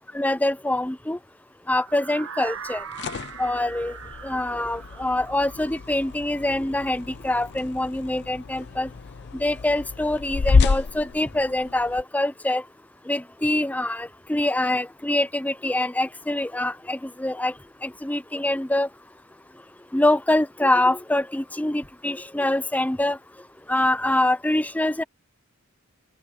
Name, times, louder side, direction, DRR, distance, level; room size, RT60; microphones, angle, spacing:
voice 1, 0.1-1.2 1.7-2.8 3.4-4.0 4.2-8.9 9.3-12.6 13.1-17.5 17.8-18.9 19.9-23.2 23.7-25.0, left 1 dB, 5° left, 0.6 m, -24 dB
sound 1, 1.8-7.8, right 7 dB, 65° right, 1.3 m, -41 dB
sound 2, 2.6-12.0, left 4 dB, 50° left, 0.5 m, -29 dB
open air
head